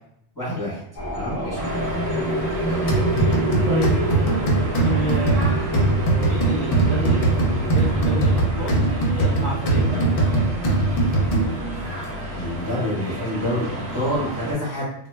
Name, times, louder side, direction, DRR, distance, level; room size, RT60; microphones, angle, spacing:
voice 1, 0.4-0.8 1.1-1.6 2.6-2.9 12.3-14.9, equal, 20° left, -8 dB, 0.8 m, -27 dB
sound 1, 1.0-12.6, right 2 dB, 35° left, 0.3 m, -29 dB
voice 2, 1.3-1.9 3.7-5.6 6.2-8.8 9.4-10.4, left 1 dB, 55° right, -6 dB, 0.5 m, -30 dB
sound 2, 1.5-14.5, equal, 75° right, 1.0 m, -31 dB
sound 3, 2.9-11.8, right 2 dB, 60° left, 0.7 m, -21 dB
2.1 x 2.0 x 3.1 m, 0.73 s
omnidirectional pair, 1.2 m